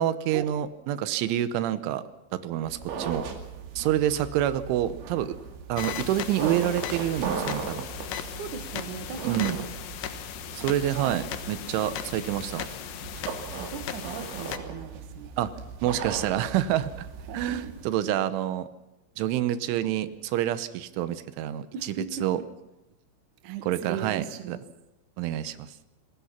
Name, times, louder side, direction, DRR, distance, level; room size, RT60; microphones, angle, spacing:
voice 1, 0.0-2.0 2.3-3.2 3.8-5.4 5.7-7.9 9.3-9.6 10.5-12.6 15.4-15.5 15.8-17.1 17.3-18.7 19.2-21.7 22.2-22.4 23.6-24.6 25.2-25.7, right 12 dB, 85° right, 13 dB, 3.4 m, -27 dB
sound 1, 2.6-17.9, right 6 dB, 70° right, 4.6 m, -38 dB
sound 2, 5.8-14.6, left 10 dB, 70° left, 3.2 m, -37 dB
voice 2, 8.1-9.7 10.5-10.7 10.9-11.2 13.5-15.4 17.3-17.8 21.7-22.5 23.4-24.6, right 7 dB, 55° right, 8 dB, 2.5 m, -38 dB
27.0 x 20.0 x 5.9 m, 0.93 s
omnidirectional pair, 5.4 m